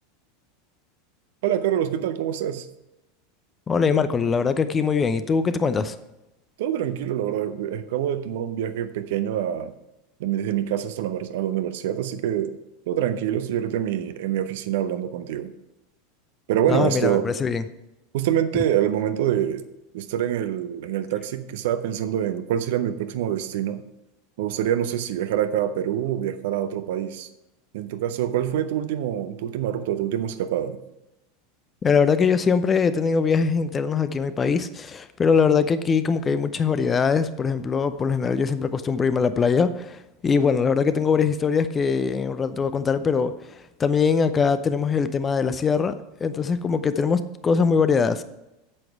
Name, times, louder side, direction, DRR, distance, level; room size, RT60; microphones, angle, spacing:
voice 1, 1.4-2.7 6.6-9.7 10.2-12.5 12.9-15.5 16.5-17.3 18.1-19.6 19.9-23.8 24.4-27.3 27.7-30.8, right 10 dB, 55° right, 0.7 m, -25 dB
voice 2, 3.7-6.0 16.7-17.6 31.8-45.9 46.2-48.2, left 5 dB, 20° left, 0.6 m, -22 dB
8.7 x 7.9 x 4.7 m
figure-of-eight pair, 80°, 0 cm